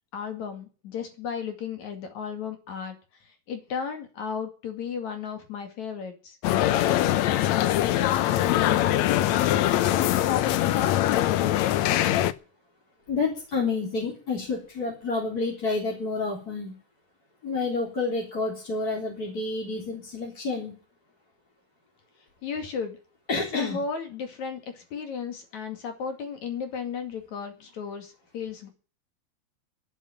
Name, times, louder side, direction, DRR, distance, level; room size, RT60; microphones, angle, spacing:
voice 1, 0.1-2.9 3.2-6.4 22.4-23.0 23.3-28.7, left 6 dB, 55° left, 6 dB, 3.3 m, -34 dB
sound 1, 6.4-12.3, left 13 dB, 80° left, 1.6 m, -22 dB
voice 2, 13.1-16.7 17.4-20.7 23.3-23.8, left 3 dB, 25° left, -2 dB, 3.9 m, -29 dB
12.0 x 10.5 x 9.0 m, 0.37 s
omnidirectional pair, 4.2 m